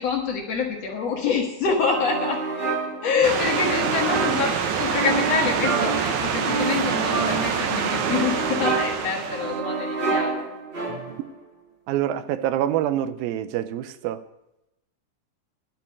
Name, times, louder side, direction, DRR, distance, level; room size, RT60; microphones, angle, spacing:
voice 1, 0.0-2.4 3.0-10.5, left 5 dB, 60° left, 1 dB, 1.9 m, -26 dB
sound 1, 1.8-11.3, right 4 dB, 20° right, 1.6 m, -28 dB
sound 2, 3.2-9.6, right 7 dB, 65° right, 2.1 m, -26 dB
voice 2, 11.9-14.2, right 12 dB, 85° right, 13 dB, 2.4 m, -26 dB
11.5 x 6.1 x 9.2 m, 0.89 s
omnidirectional pair, 4.1 m